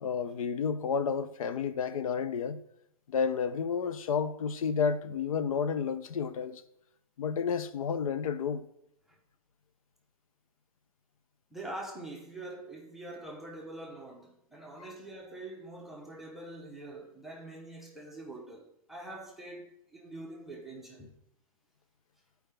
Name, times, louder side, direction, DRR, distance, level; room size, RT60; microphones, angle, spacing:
voice 1, 0.0-2.6 3.1-6.6 7.2-8.6, left 6 dB, 75° left, 0.7 m, -31 dB
voice 2, 11.5-21.2, right 2 dB, ahead, 0.8 m, -44 dB
12.0 x 4.7 x 3.4 m
hypercardioid pair, 150°, 18 cm